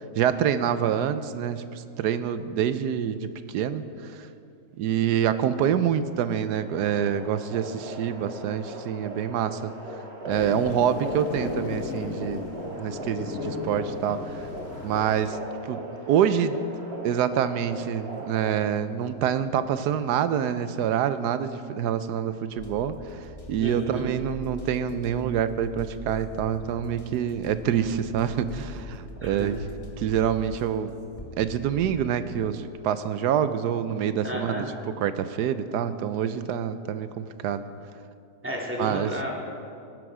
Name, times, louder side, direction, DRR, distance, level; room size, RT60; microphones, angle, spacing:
voice 1, 0.2-4.3 4.8-9.7 10.3-14.5 14.8-15.4 15.6-15.8 16.1-16.6 17.0-29.6 30.0-30.9 31.4-34.6 35.0-37.6 38.8-39.1, right 9 dB, 75° right, 12 dB, 1.1 m, -26 dB
sound 1, 6.6-18.7, right 2 dB, 35° right, 1.9 m, -39 dB
sound 2, 10.3-15.3, left 4 dB, 55° left, 1.2 m, -35 dB
sound 3, 22.6-32.1, equal, 20° left, 1.3 m, -43 dB
voice 2, 23.6-24.0 29.2-29.5 34.2-34.7 38.4-39.3, equal, 5° right, -3 dB, 2.1 m, -32 dB
18.0 x 11.0 x 4.9 m, 2.6 s
omnidirectional pair, 1.9 m